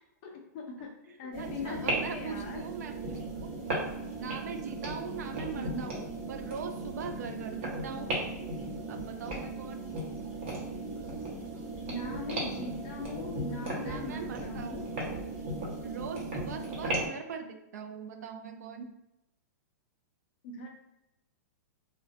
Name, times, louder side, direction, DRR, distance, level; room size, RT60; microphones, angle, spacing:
voice 1, 0.2-2.6 5.5-5.8 11.9-14.9 20.4-20.7, left 2 dB, 25° left, 1 dB, 0.4 m, -40 dB
sound 1, 1.3-17.1, right 2 dB, 40° right, 0.8 m, -36 dB
voice 2, 1.4-3.5 4.2-8.1 8.9-9.8 13.8-14.9 15.8-18.9, right 6 dB, 65° right, 6 dB, 0.4 m, -41 dB
2.4 x 2.1 x 2.5 m, 0.88 s
supercardioid pair, 170°, 9 cm